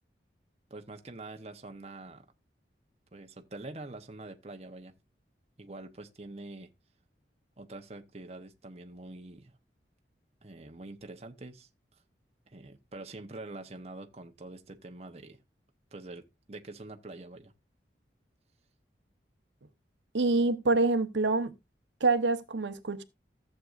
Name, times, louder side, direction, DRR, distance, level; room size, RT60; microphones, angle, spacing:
voice 1, 0.7-2.3 3.1-4.9 5.6-6.7 7.6-9.6 10.4-12.0 12.5-15.4 15.9-17.5, right 2 dB, 35° right, 0.9 m, -45 dB
voice 2, 20.1-21.5 22.0-23.0, right 3 dB, 85° right, 1.0 m, -26 dB
14.5 x 7.7 x 2.5 m
head